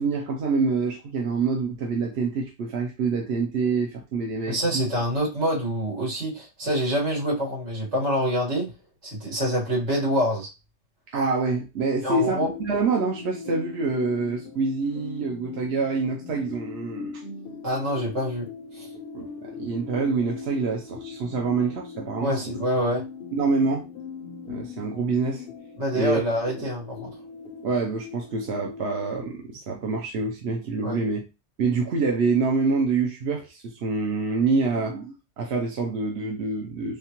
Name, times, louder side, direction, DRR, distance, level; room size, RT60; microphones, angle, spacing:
voice 1, 0.0-4.8 11.1-17.2 19.1-19.3 19.6-22.8 23.3-23.8 24.5-25.4 25.9-26.2 26.6-26.7 27.6-31.2 31.6-37.0, right 4 dB, 70° right, 0 dB, 1.0 m, -26 dB
voice 2, 4.5-8.7 9.0-10.5 12.0-12.5 17.6-18.5 18.8-18.9 22.2-23.0 25.8-27.1 30.8-31.0, equal, 90° right, -3 dB, 2.0 m, -26 dB
sound 1, 12.3-29.3, left 5 dB, 65° left, 0.7 m, -40 dB
3.6 x 3.5 x 2.9 m, 0.27 s
omnidirectional pair, 1.2 m